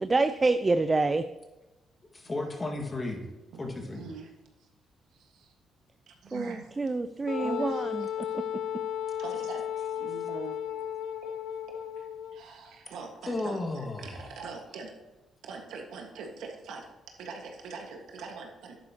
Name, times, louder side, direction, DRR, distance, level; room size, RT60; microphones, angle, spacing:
voice 1, 0.0-1.2 6.3-8.4, right 3 dB, 25° right, 10 dB, 0.4 m, -27 dB
voice 2, 2.1-3.2 3.6-4.0 13.3-14.3, left 2 dB, 25° left, 2 dB, 1.8 m, -34 dB
voice 3, 3.5-4.3 4.6-4.7 5.1-5.5 6.1-6.8 7.3-8.5 9.2-10.6 12.0-12.1 12.3-14.9 15.4-18.8, right 4 dB, 80° right, 2 dB, 1.6 m, -43 dB
Wind instrument woodwind instrument, 7.3-12.4, left 9 dB, 80° left, 0.5 m, -34 dB
11.0 x 9.5 x 2.9 m, 1.1 s
cardioid pair, 90°, 0 cm